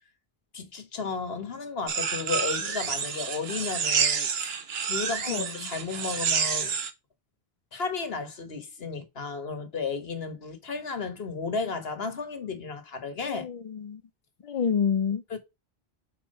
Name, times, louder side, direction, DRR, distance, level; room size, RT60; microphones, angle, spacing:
voice 1, 0.5-4.6 4.9-6.8 7.7-13.5 15.3-15.4, left 4 dB, 70° left, 1.6 m, -33 dB
sound 1, 1.9-6.9, right 6 dB, 70° right, 1.1 m, -28 dB
voice 2, 5.2-5.7 13.2-14.0 14.4-15.2, left 7 dB, 50° left, 0.4 m, -28 dB
5.3 x 4.5 x 5.3 m
omnidirectional pair, 1.1 m